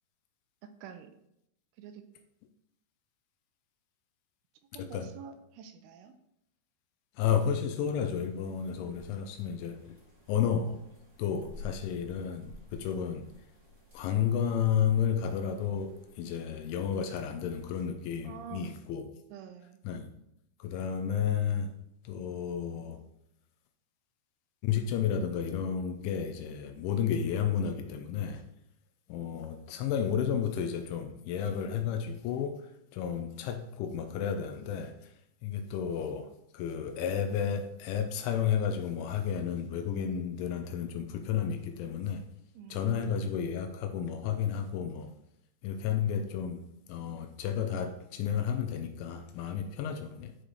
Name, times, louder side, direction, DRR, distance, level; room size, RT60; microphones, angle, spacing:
voice 1, 0.6-1.2 1.8-2.0 4.7-6.1 8.8-9.5 18.2-18.7 19.3-19.8 42.6-43.1, right 7 dB, 85° right, 7 dB, 3.0 m, -48 dB
voice 2, 4.8-5.1 7.2-10.0 10.3-10.8 11.2-13.3 13.9-19.1 19.8-20.1 20.6-21.7 22.0-23.0 24.6-28.4 29.1-32.6 32.9-35.1 35.4-36.3 36.5-42.3 42.7-45.1 45.6-46.6 46.9-50.4, left 8 dB, 85° left, 7 dB, 2.9 m, -32 dB
sound 1, 7.7-17.9, left 3 dB, 40° right, 1.0 m, -54 dB
12.0 x 4.9 x 3.2 m, 0.78 s
omnidirectional pair, 5.7 m